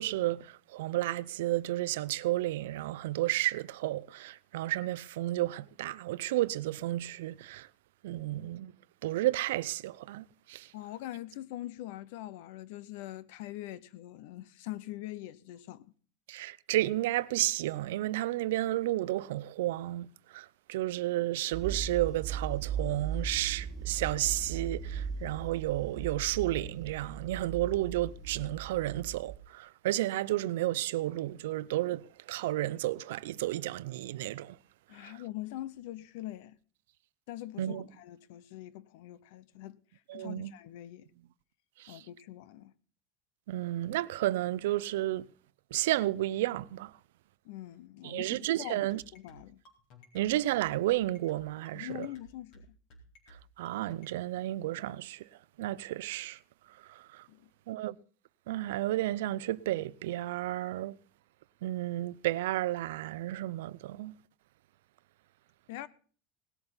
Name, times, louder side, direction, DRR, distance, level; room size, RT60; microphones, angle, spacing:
voice 1, 0.0-7.7 8.0-8.7 9.0-10.7 16.3-34.6 35.0-35.1 37.6-37.9 40.1-40.5 41.8-42.0 43.5-45.3 45.7-46.9 48.0-49.0 50.1-52.1 53.6-55.2 55.6-56.4 56.9-57.2 57.7-58.0 58.5-60.9 61.6-64.1, right 15 dB, 90° right, 0.6 m, -32 dB
voice 2, 10.7-15.9 34.9-36.6 37.3-39.8 40.1-41.1 41.9-42.7 47.4-49.6 51.7-52.8 57.3-57.5 65.7-65.9, left 15 dB, 70° left, 0.8 m, -43 dB
sound 1, 21.5-29.4, right 6 dB, 25° right, 1.9 m, -38 dB
sound 2, 48.9-54.2, equal, 50° left, 4.2 m, -55 dB
18.5 x 8.0 x 5.7 m
supercardioid pair, 150°, 0 cm